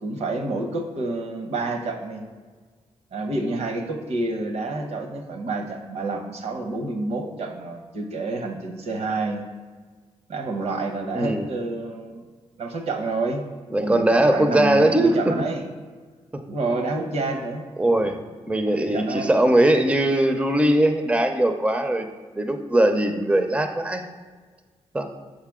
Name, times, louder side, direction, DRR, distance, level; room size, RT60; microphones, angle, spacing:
voice 1, 0.0-2.2 3.1-9.4 10.3-12.3 12.6-13.4 13.8-15.6 16.5-17.6 18.6-19.3, right 2 dB, 70° right, 4 dB, 0.9 m, -28 dB
voice 2, 11.1-11.5 13.7-15.2 16.3-16.4 17.8-18.2 18.5-22.1 22.4-24.1 24.9-25.1, right 1 dB, 10° right, 6 dB, 0.5 m, -20 dB
6.6 x 4.2 x 3.6 m, 1.5 s
cardioid pair, 75°, 11 cm